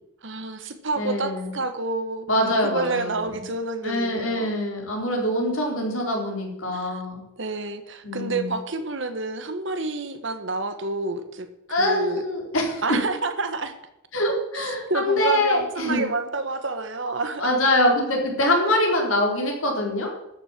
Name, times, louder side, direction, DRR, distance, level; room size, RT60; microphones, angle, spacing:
voice 1, 0.2-2.3 2.6-4.6 5.1-5.4 6.6-7.0 7.4-11.5 11.8-12.2 12.8-13.7 14.5-17.5 19.3-19.5, right 3 dB, 60° right, 9 dB, 1.4 m, -29 dB
voice 2, 1.0-1.5 2.3-3.2 3.8-7.2 8.0-8.5 11.7-12.8 14.1-16.0 17.4-20.1, left 1 dB, 75° left, 0 dB, 4.0 m, -24 dB
13.0 x 7.5 x 7.4 m, 0.85 s
head